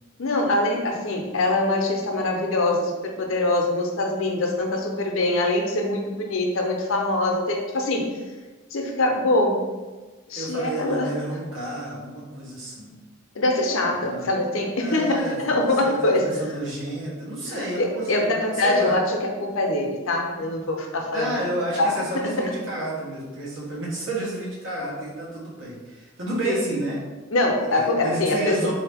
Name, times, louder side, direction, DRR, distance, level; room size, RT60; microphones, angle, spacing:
voice 1, 0.2-8.1 8.7-9.7 10.3-11.1 13.3-16.2 17.5-21.3 21.8-22.5 26.4-26.5 27.3-28.7, left 2 dB, 85° left, 2 dB, 0.7 m, -23 dB
voice 2, 10.3-13.0 13.7-14.3 14.8-15.4 15.8-19.0 21.1-27.0 27.6-28.7, right 1 dB, 70° right, -5 dB, 1.2 m, -30 dB
3.9 x 2.7 x 3.5 m, 1.2 s
head